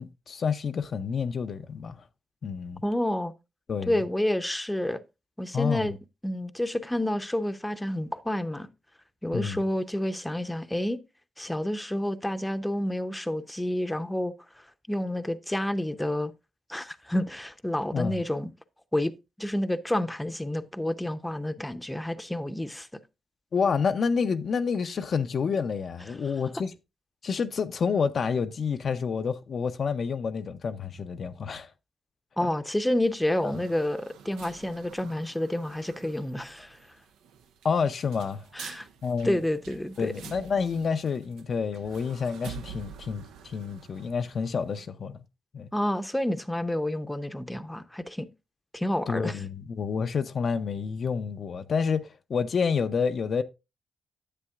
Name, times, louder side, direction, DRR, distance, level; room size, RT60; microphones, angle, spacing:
voice 1, 0.0-2.0 2.4-2.8 3.7-4.0 5.5-5.9 9.3-9.6 17.9-18.1 23.5-26.7 27.2-31.7 33.4-33.5 37.6-38.5 39.0-39.4 40.0-45.2 45.5-45.7 49.1-52.0 52.3-53.4, left 6 dB, 60° left, 0.5 m, -28 dB
voice 2, 2.8-3.3 3.9-5.0 5.4-6.0 6.2-8.7 9.2-11.0 11.4-14.3 14.9-16.3 16.7-18.5 18.9-19.1 19.4-22.9 32.4-36.8 38.5-38.9 39.2-40.1 45.7-48.3 48.7-49.4, left 1 dB, 10° left, 0.6 m, -29 dB
sound 1, 32.9-44.8, right 7 dB, 90° right, 0.5 m, -48 dB
9.9 x 7.6 x 2.4 m
supercardioid pair, 55°, 0 cm